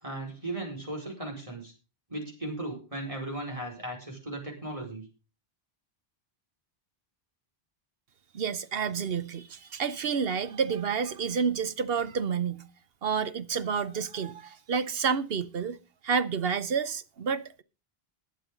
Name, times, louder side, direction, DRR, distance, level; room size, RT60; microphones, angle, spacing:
voice 1, 0.0-1.7 2.1-5.0, right 1 dB, 35° right, 4.9 m, -36 dB
voice 2, 8.3-12.7 13.0-15.8 16.0-17.6, right 6 dB, 70° right, 1.0 m, -29 dB
20.5 x 7.8 x 3.8 m
omnidirectional pair, 1.0 m